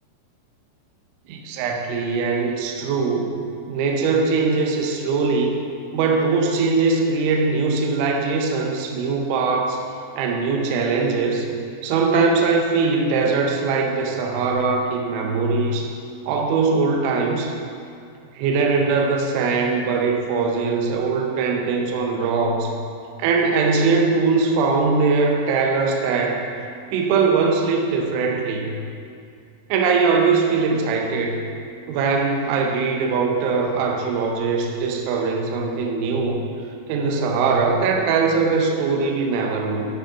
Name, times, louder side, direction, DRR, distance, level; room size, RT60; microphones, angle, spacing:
voice 1, 1.3-3.4 3.7-5.7 5.9-9.8 10.2-11.5 11.8-15.9 16.3-17.5 18.4-22.7 23.2-26.4 26.9-28.7 29.7-31.4 31.9-36.4 36.9-39.9, right 4 dB, 75° right, 1 dB, 3.0 m, -21 dB
12.5 x 6.4 x 4.0 m, 2.4 s
omnidirectional pair, 5.8 m